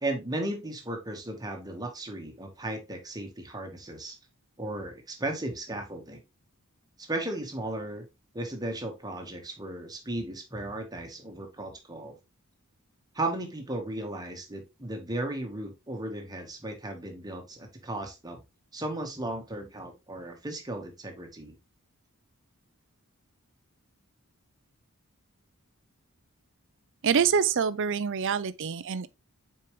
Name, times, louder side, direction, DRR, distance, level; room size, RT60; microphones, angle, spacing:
voice 1, 0.0-4.2 4.6-6.2 7.0-8.1 8.3-12.2 13.1-18.4 18.7-21.6, right 1 dB, 15° right, 1.4 m, -35 dB
voice 2, 27.0-29.1, right 6 dB, 55° right, 0.5 m, -26 dB
6.9 x 4.5 x 3.2 m
head